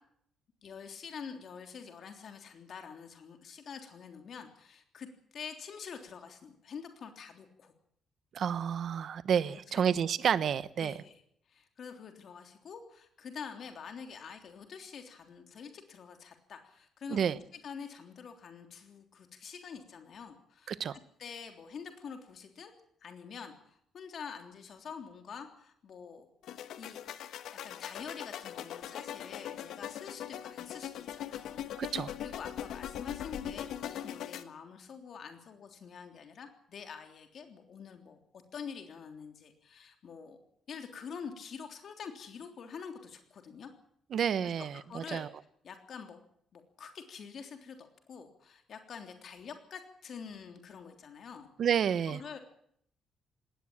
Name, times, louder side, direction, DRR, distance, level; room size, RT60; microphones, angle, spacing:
voice 1, 0.6-5.1 5.3-7.7 9.5-10.0 10.8-11.2 11.5-22.7 23.0-26.3 26.6-27.0 27.5-38.2 38.5-40.4 40.7-43.7 44.4-45.3 45.6-46.2 46.5-51.5 52.1-52.4, left 6 dB, 45° left, 5 dB, 3.4 m, -46 dB
voice 2, 8.3-10.9 17.1-17.4 20.7-21.0 31.8-32.1 44.1-45.3 51.6-52.2, right 8 dB, 45° right, 16 dB, 0.9 m, -30 dB
sound 1, 26.4-34.4, left 10 dB, 75° left, 1.4 m, -41 dB
19.5 x 17.5 x 8.7 m, 0.68 s
cardioid pair, 170°, 0 cm